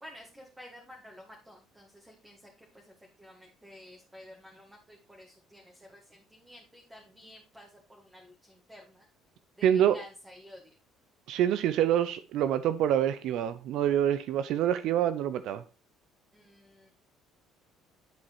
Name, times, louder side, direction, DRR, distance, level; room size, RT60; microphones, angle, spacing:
voice 1, 0.0-9.1 9.6-10.7 16.3-16.9, equal, 10° right, 2.0 m, -52 dB
voice 2, 9.6-10.0 11.3-15.6, right 10 dB, 70° right, 0.5 m, -26 dB
10.5 x 4.3 x 4.6 m
cardioid pair, 105°, 0 cm